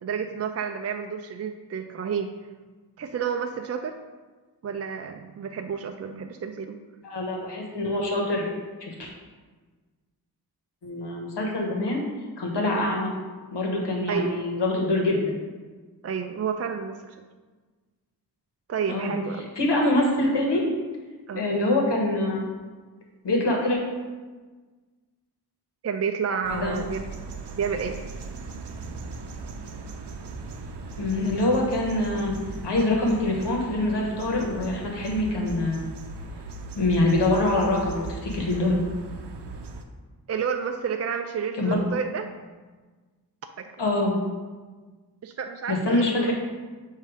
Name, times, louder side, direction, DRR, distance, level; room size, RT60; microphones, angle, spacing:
voice 1, 0.0-2.3 3.0-4.0 4.6-6.8 12.7-12.9 14.1-14.4 16.0-17.2 18.7-19.5 21.3-21.5 25.8-27.0 27.6-28.0 40.3-42.3 43.6-43.7 45.2-46.3, right 6 dB, 40° right, 5 dB, 0.4 m, -30 dB
voice 2, 7.0-8.5 8.8-9.1 10.8-12.0 12.4-13.1 13.5-15.3 18.9-19.1 19.6-20.7 21.3-22.4 23.2-23.8 26.5-26.7 31.0-32.3 32.6-35.8 36.7-38.8 41.6-41.8 43.8-44.2 45.7-46.3, left 2 dB, 80° left, 0 dB, 1.3 m, -24 dB
sound 1, 26.4-39.8, right 4 dB, 80° right, 0.7 m, -38 dB
7.6 x 2.8 x 4.9 m, 1.4 s
cardioid pair, 65°, 41 cm